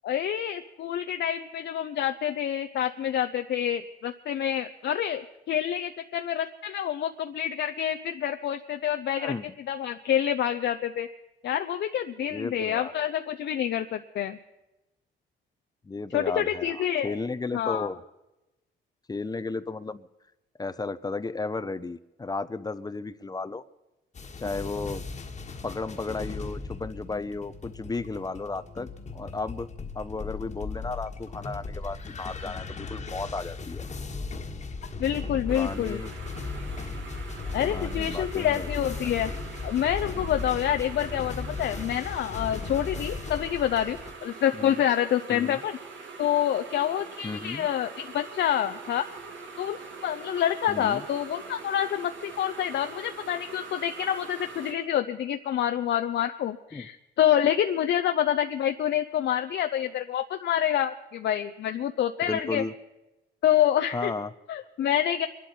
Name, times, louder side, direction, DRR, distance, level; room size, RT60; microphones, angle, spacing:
voice 1, 0.0-9.3 9.7-11.1 11.4-14.4 16.1-17.2 17.5-17.9 35.0-36.0 37.5-39.3 39.6-45.8 46.2-49.1 49.6-49.8 50.0-62.6 63.4-64.1 64.5-65.3, left 10 dB, 60° left, 7 dB, 0.6 m, -27 dB
voice 2, 12.3-12.9 15.8-18.0 19.1-20.1 20.6-23.6 24.4-25.0 25.6-33.9 35.3-36.1 37.6-38.7 44.5-44.8 45.3-45.6 47.2-47.7 50.7-51.0 56.7-56.9 62.2-62.7 63.9-64.3, left 3 dB, 20° left, 15 dB, 0.6 m, -34 dB
sound 1, 24.1-44.1, left 3 dB, 35° left, 1.5 m, -37 dB
sound 2, 35.5-54.7, right 4 dB, 70° right, 2.3 m, -43 dB
24.0 x 12.0 x 4.3 m, 0.98 s
cardioid pair, 90°, 20 cm